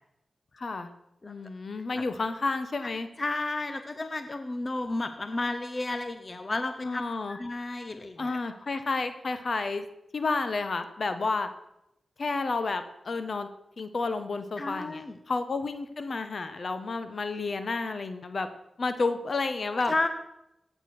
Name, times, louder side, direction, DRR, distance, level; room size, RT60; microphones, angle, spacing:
voice 1, 0.5-0.9 1.3-3.1 6.8-7.4 8.2-9.8 10.1-11.5 12.2-13.5 13.8-18.5 18.8-20.1, left 3 dB, 65° left, 10 dB, 1.4 m, -31 dB
voice 2, 3.2-7.0 7.3-8.4 14.6-15.1 19.9-20.1, left 2 dB, 40° left, 9 dB, 1.2 m, -32 dB
16.5 x 8.9 x 6.2 m, 0.85 s
cardioid pair, 55°, 0 cm